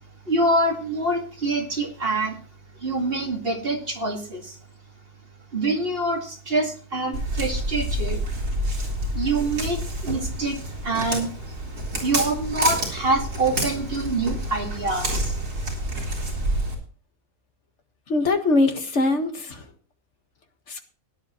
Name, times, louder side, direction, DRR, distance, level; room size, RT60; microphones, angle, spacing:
voice 1, 0.2-2.4 2.8-4.6 5.5-8.2 9.1-11.3 12.0-15.4 15.6-15.8, right 2 dB, 40° right, 2 dB, 2.4 m, -25 dB
Walk footsteps, 7.1-16.7, right 1 dB, 75° right, 4.3 m, -28 dB
voice 2, 18.1-19.6 20.7-20.8, left 2 dB, 50° left, 5 dB, 1.9 m, -22 dB
17.5 x 10.5 x 3.1 m, 0.41 s
omnidirectional pair, 1.6 m